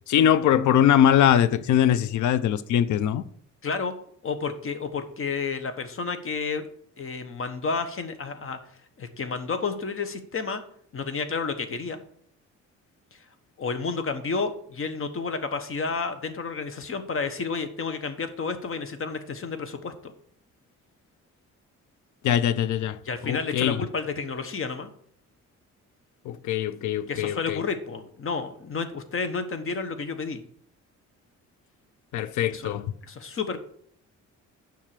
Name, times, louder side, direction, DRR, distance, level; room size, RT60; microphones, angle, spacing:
voice 1, 0.1-3.2 22.2-23.8 26.3-27.6 32.1-32.9, left 10 dB, 75° left, 0.6 m, -22 dB
voice 2, 3.6-3.9 4.2-6.7 7.0-8.6 9.0-10.6 10.9-12.0 13.6-19.9 23.0-24.9 27.1-30.4 32.5-32.7 33.0-33.6, left 4 dB, 45° left, 1.2 m, -31 dB
7.5 x 5.7 x 6.6 m
cardioid pair, 90°, 30 cm